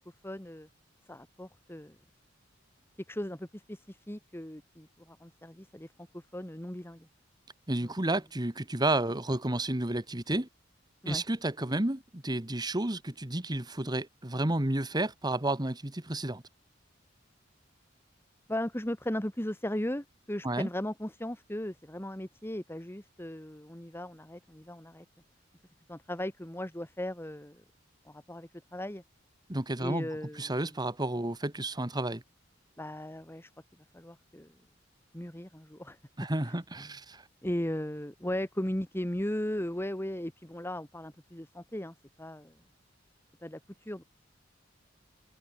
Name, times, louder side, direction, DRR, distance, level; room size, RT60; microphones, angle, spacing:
voice 1, 0.2-0.7 1.1-2.0 3.1-7.1 7.8-7.9 11.0-11.3 18.5-25.1 25.9-27.6 28.1-29.0 29.8-30.7 32.8-33.5 33.9-34.5 35.1-36.0 36.5-36.6 37.4-42.6 43.4-44.0, left 1 dB, 10° left, 1.9 m, -37 dB
voice 2, 7.7-10.5 11.1-16.4 20.4-20.7 29.5-30.1 30.3-32.2 36.2-37.2, right 1 dB, 20° right, 1.7 m, -31 dB
head